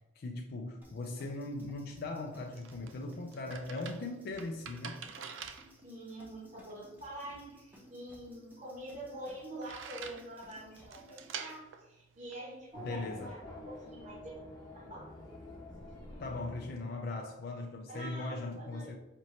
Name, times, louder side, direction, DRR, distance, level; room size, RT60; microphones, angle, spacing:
voice 1, 0.2-5.0 12.8-13.4 16.2-19.0, left 2 dB, 50° left, 2 dB, 0.4 m, -39 dB
sound 1, 0.8-11.6, equal, 10° right, 0.8 m, -59 dB
sound 2, 2.1-13.0, right 7 dB, 70° right, 0.4 m, -48 dB
voice 2, 5.8-14.3 14.7-15.1 17.8-18.9, right 1 dB, 40° right, -4 dB, 1.0 m, -46 dB
Race car auto racing / Accelerating revving vroom, 12.7-17.4, left 1 dB, 20° left, 1.0 m, -48 dB
5.1 x 2.8 x 3.1 m, 1.0 s
head